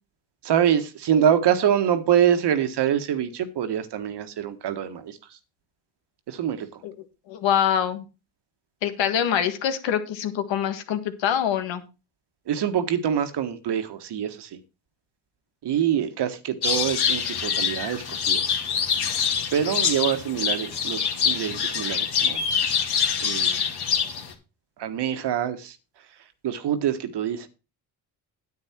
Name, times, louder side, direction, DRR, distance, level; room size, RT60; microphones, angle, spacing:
voice 1, 0.4-5.2 6.3-6.8 12.5-14.6 15.6-18.4 19.5-22.4 23.2-23.6 24.8-25.7 26.4-27.5, right 9 dB, 60° right, 10 dB, 1.6 m, -25 dB
voice 2, 7.3-8.0 8.8-11.8, left 9 dB, 75° left, 9 dB, 1.8 m, -24 dB
sound 1, 16.6-24.3, left 7 dB, 55° left, 2.4 m, -25 dB
9.6 x 8.8 x 4.5 m, 0.29 s
cardioid pair, 85°, 45 cm